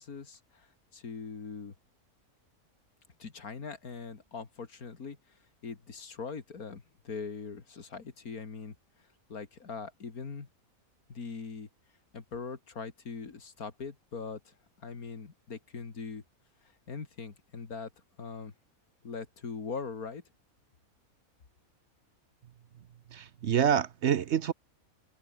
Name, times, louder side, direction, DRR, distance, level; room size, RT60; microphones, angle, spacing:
voice 1, 0.0-1.7 3.2-5.2 5.6-8.7 9.3-10.5 11.1-11.7 12.1-16.2 16.6-17.9 18.2-18.5 19.0-20.2, left 5 dB, 85° left, 2.8 m, -41 dB
voice 2, 23.1-24.5, right 8 dB, 60° right, 0.9 m, -27 dB
omnidirectional pair, 1.5 m